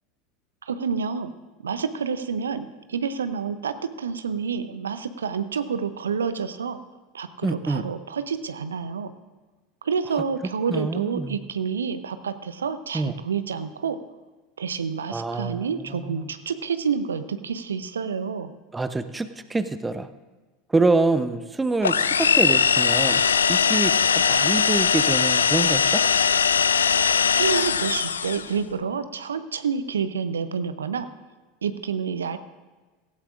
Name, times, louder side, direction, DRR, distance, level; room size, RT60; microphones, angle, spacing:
voice 1, 0.7-1.3 1.6-6.8 7.1-9.1 9.8-14.0 14.6-18.5 27.4-31.1 31.6-32.4, right 6 dB, 75° right, 12 dB, 0.6 m, -28 dB
voice 2, 7.4-7.8 10.7-11.4 12.9-13.1 15.1-16.3 18.7-20.1 20.7-23.2 23.5-26.0, right 3 dB, 10° right, 12 dB, 0.7 m, -26 dB
sound 1, 21.8-28.5, left 6 dB, 75° left, 0.4 m, -20 dB
17.0 x 15.5 x 2.5 m, 1.3 s
figure-of-eight pair, 80°, 0 cm